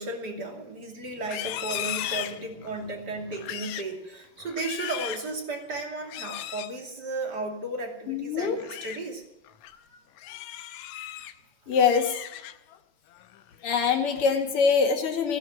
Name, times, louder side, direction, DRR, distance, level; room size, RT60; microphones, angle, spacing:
voice 1, 0.0-9.2, right 2 dB, 35° right, 2 dB, 3.0 m, -34 dB
Livestock farm animals working animals, 1.2-2.8 3.3-3.9 4.4-5.3 6.0-6.7 8.4-9.0 9.4-9.7 10.2-11.3 11.7-12.8 13.1-13.5 13.9-14.3, left 13 dB, 75° left, 2.1 m, -37 dB
voice 2, 8.1-8.6 11.7-12.1 13.6-15.4, left 6 dB, 50° left, 3 dB, 2.8 m, -23 dB
16.0 x 11.0 x 7.4 m, 0.88 s
omnidirectional pair, 3.4 m